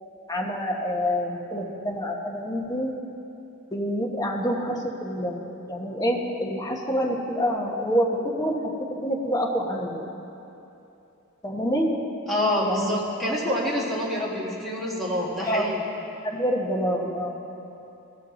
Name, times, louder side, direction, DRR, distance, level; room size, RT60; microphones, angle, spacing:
voice 1, 0.3-2.9 3.7-8.7 9.0-10.1 11.4-11.9 12.6-12.9 15.4-15.6 16.2-17.4, equal, 15° left, -1 dB, 1.0 m, -27 dB
voice 2, 12.3-15.8, left 1 dB, ahead, -7 dB, 1.8 m, -26 dB
16.5 x 6.5 x 3.8 m, 2.8 s
head